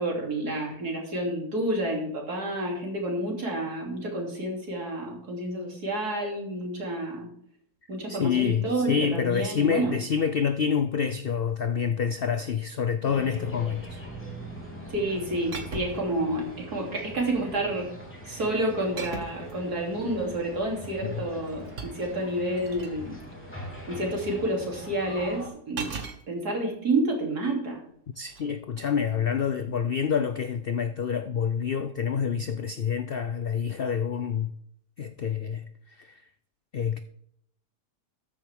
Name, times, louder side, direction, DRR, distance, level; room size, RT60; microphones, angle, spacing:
voice 1, 0.0-7.3 7.9-9.9 14.9-17.9 18.3-23.2 23.9-25.9 26.3-27.8, right 1 dB, 70° right, 3.6 m, -29 dB
voice 2, 8.1-14.0 21.0-21.2 28.2-34.5 35.0-36.2 36.7-37.0, left 7 dB, 70° left, 0.5 m, -27 dB
sound 1, 13.0-25.5, equal, 5° left, 3.3 m, -42 dB
sound 2, 15.5-16.2 17.1-17.5 19.0-19.5 21.2-23.0 25.8-26.2 28.2-28.5, right 5 dB, 50° right, 1.7 m, -38 dB
13.5 x 10.5 x 3.6 m
omnidirectional pair, 1.7 m